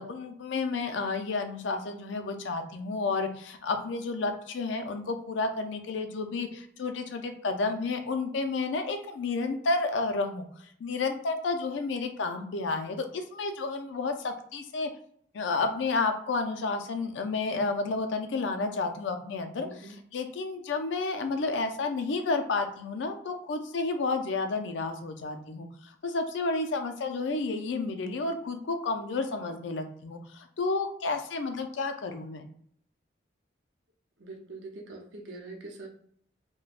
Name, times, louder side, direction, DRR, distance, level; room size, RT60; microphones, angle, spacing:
voice 1, 0.0-14.9 15.3-19.7 20.1-32.5, left 3 dB, 75° left, 6 dB, 0.4 m, -31 dB
voice 2, 19.6-20.0 34.2-35.9, right 2 dB, 80° right, 1 dB, 0.6 m, -43 dB
3.3 x 2.2 x 2.4 m, 0.64 s
head